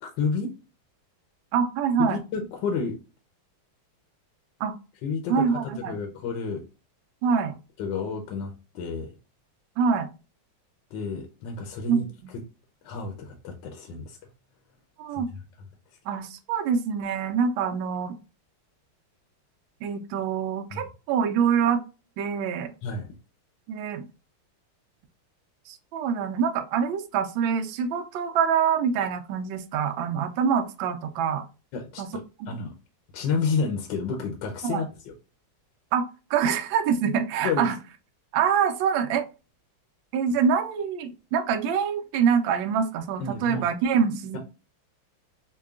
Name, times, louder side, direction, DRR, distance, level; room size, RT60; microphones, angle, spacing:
voice 1, 0.0-0.5 2.0-3.0 5.0-6.6 7.8-9.1 10.9-12.0 12.8-14.2 15.1-15.2 20.7-20.8 22.8-23.1 31.7-32.7 33.1-34.9 37.4-37.7 43.2-43.6, left 5 dB, 70° left, 1.2 m, -30 dB
voice 2, 1.5-2.2 4.6-4.7 5.3-5.9 7.2-7.6 9.8-10.1 11.9-12.1 15.0-15.3 16.1-18.2 19.8-21.8 22.2-22.7 23.7-24.0 25.7-31.5 32.0-32.6 34.6-34.8 35.9-37.8 38.3-39.2 40.1-44.4, right 7 dB, 75° right, 1.3 m, -25 dB
5.4 x 2.2 x 2.4 m
omnidirectional pair, 2.3 m